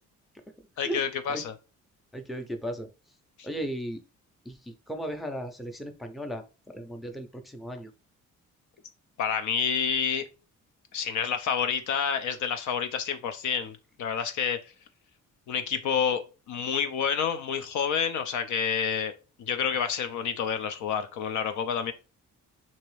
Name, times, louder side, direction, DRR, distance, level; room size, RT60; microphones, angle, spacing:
voice 1, 0.8-1.5 9.2-10.2 10.9-14.7 15.5-19.1 19.4-21.9, left 7 dB, 75° left, 0.6 m, -29 dB
voice 2, 2.1-2.9 3.4-4.0 4.4-7.9, equal, ahead, 0.5 m, -36 dB
3.0 x 2.8 x 3.1 m
cardioid pair, 90°, 30 cm